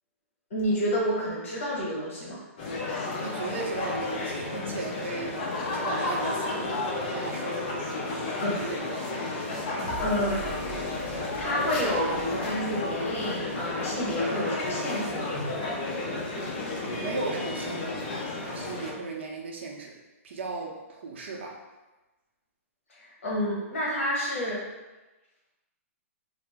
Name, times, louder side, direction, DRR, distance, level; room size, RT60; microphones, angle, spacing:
voice 1, 0.5-2.4 8.4-8.7 10.0-10.4 11.4-15.3 22.9-24.6, equal, 60° left, -5 dB, 1.1 m, -29 dB
sound 1, 2.6-18.9, left 2 dB, 35° left, 0.5 m, -32 dB
voice 2, 3.2-6.7 7.0-7.8 8.3-9.0 17.0-18.2 18.5-20.0 20.2-21.6, right 3 dB, 50° right, 0 dB, 0.6 m, -36 dB
sound 2, 9.8-14.0, right 4 dB, 10° left, 1.0 m, -44 dB
3.8 x 2.0 x 3.4 m, 1.1 s
hypercardioid pair, 175°, 8 cm